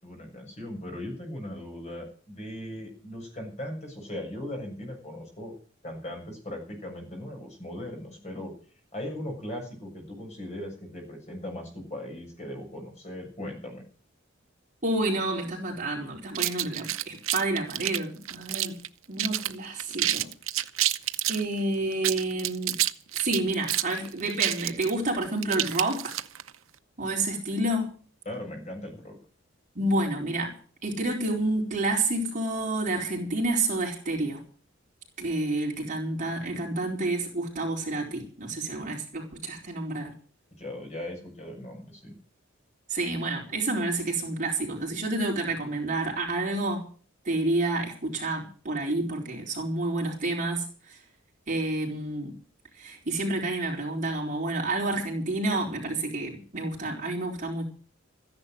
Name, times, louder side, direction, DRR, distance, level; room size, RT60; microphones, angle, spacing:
voice 1, 0.0-5.6 5.8-8.5 8.9-13.8 28.3-29.2 40.6-42.1, left 1 dB, 35° left, 2 dB, 7.2 m, -38 dB
voice 2, 14.8-18.8 19.1-20.3 21.3-22.8 23.1-26.2 27.0-27.9 29.8-30.5 30.8-34.4 35.2-40.1 42.9-46.9 47.2-51.0 51.5-52.3 52.8-57.6, right 2 dB, 40° right, -1 dB, 4.3 m, -29 dB
sound 1, 16.3-18.9 19.2-19.5 19.8-21.4 21.9-26.5, right 14 dB, 80° right, 0.7 m, -28 dB
14.5 x 10.5 x 7.7 m, 0.42 s
head